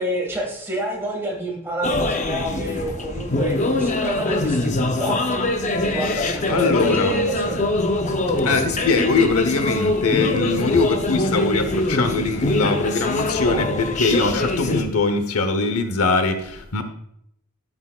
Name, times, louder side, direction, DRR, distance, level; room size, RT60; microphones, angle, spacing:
voice 1, 0.0-5.4 5.8-7.6, equal, 10° right, -2 dB, 2.0 m, -28 dB
sound 1, 1.8-14.8, left 2 dB, 35° left, 0.6 m, -23 dB
voice 2, 6.2-7.2 8.4-16.8, left 3 dB, 80° left, 8 dB, 0.9 m, -22 dB
12.5 x 6.6 x 2.4 m, 0.72 s
head